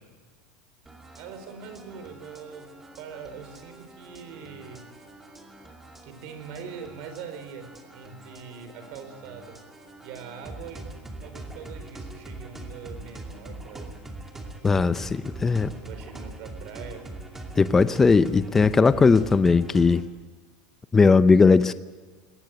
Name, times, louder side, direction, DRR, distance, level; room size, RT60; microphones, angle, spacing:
sound 1, 0.9-20.1, right 2 dB, 10° right, 2.5 m, -42 dB
voice 1, 1.1-4.9 6.0-9.6 10.0-14.0 15.5-17.1, right 6 dB, 60° right, 8 dB, 4.7 m, -42 dB
voice 2, 14.6-15.7 17.6-20.0 20.9-21.7, left 4 dB, 15° left, 13 dB, 0.6 m, -18 dB
20.5 x 19.0 x 8.0 m, 1.5 s
supercardioid pair, 145°, 3 cm